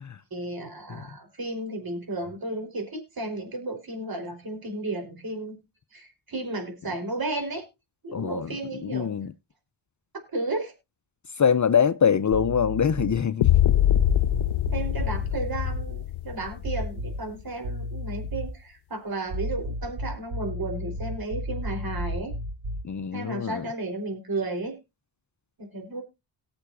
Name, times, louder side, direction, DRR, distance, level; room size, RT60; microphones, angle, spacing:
voice 1, 0.3-5.6 5.9-7.6 8.0-9.1 10.3-10.7 14.7-22.3 23.1-24.8 25.6-26.0, right 2 dB, 50° right, 4.3 m, -33 dB
voice 2, 8.1-8.5 8.8-9.3 11.4-13.5 22.8-23.7, left 7 dB, 40° left, 0.7 m, -24 dB
sound 1, 12.3-13.3 13.9-15.9 16.6-17.4 17.6-18.6 19.3-22.9, equal, 70° right, 2.2 m, -33 dB
sound 2, 13.4-17.4, left 13 dB, 80° left, 0.6 m, -24 dB
19.0 x 7.0 x 2.6 m
cardioid pair, 55°, 47 cm